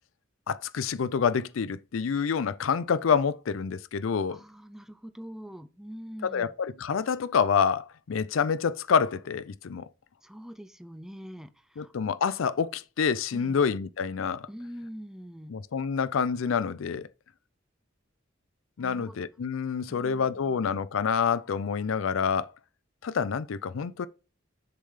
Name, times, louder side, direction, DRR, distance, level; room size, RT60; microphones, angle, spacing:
voice 1, 0.5-4.4 6.2-9.9 11.8-14.5 15.5-17.1 18.8-22.5 23.0-24.1, left 6 dB, 90° left, 0.5 m, -27 dB
voice 2, 4.3-6.5 10.2-11.9 13.3-13.6 14.5-15.5 18.8-19.3 19.9-20.8, equal, ahead, 0.4 m, -44 dB
6.7 x 3.3 x 5.5 m
head